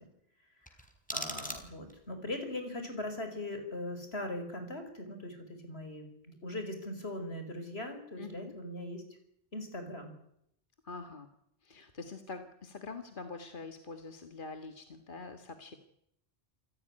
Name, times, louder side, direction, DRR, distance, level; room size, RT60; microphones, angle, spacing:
sound 1, 0.6-2.1, equal, 5° left, 4.0 m, -41 dB
voice 1, 1.1-9.0 9.5-10.1, left 1 dB, 80° left, 6 dB, 5.4 m, -40 dB
voice 2, 8.2-8.5 10.8-11.3 11.6-15.8, left 3 dB, 55° left, 7 dB, 2.0 m, -45 dB
27.5 x 15.5 x 9.9 m, 0.76 s
omnidirectional pair, 1.1 m